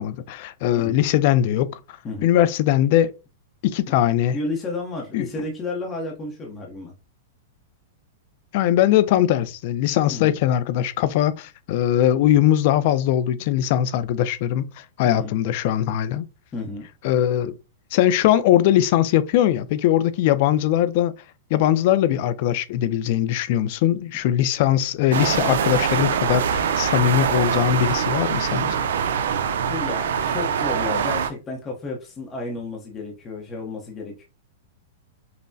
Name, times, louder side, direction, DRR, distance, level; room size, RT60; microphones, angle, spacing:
voice 1, 0.0-1.8 2.2-3.1 3.6-4.4 5.1-5.3 8.5-16.2 17.0-17.5 17.9-21.1 21.5-28.8, left 12 dB, 45° left, 0.3 m, -20 dB
voice 2, 4.3-6.9 10.1-10.3 15.0-15.3 16.5-16.9 29.7-34.3, left 2 dB, 15° left, 0.7 m, -32 dB
sound 1, 25.1-31.3, right 7 dB, 75° right, 0.4 m, -23 dB
5.4 x 2.1 x 2.6 m
supercardioid pair, 160°, 0 cm